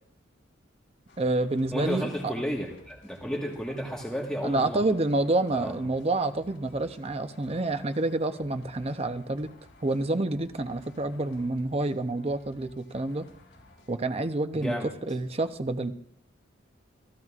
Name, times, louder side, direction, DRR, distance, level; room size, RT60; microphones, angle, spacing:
Metal Adventure, 1.1-13.9, left 1 dB, 65° left, 5.2 m, -56 dB
voice 1, 1.2-2.3 4.4-9.5 9.8-13.3 13.9-15.9, right 2 dB, 30° right, 9 dB, 0.7 m, -28 dB
voice 2, 1.7-4.8 5.5-5.7 14.5-14.9, equal, 5° left, -2 dB, 1.4 m, -32 dB
24.5 x 15.5 x 2.4 m, 0.70 s
head